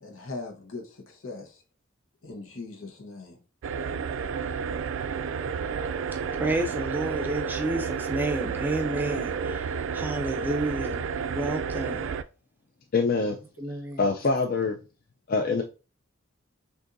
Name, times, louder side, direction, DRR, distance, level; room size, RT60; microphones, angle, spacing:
voice 1, 0.0-1.6 2.2-3.4, left 3 dB, 85° left, 1.0 m, -40 dB
sound 1, 3.6-12.2, right 6 dB, 75° right, 0.3 m, -31 dB
voice 2, 6.3-9.7 9.9-12.1 13.6-14.0, right 2 dB, 10° right, 0.5 m, -30 dB
voice 3, 12.9-13.4 14.0-14.8 15.3-15.6, left 4 dB, 45° left, 0.4 m, -24 dB
6.4 x 2.6 x 2.6 m
head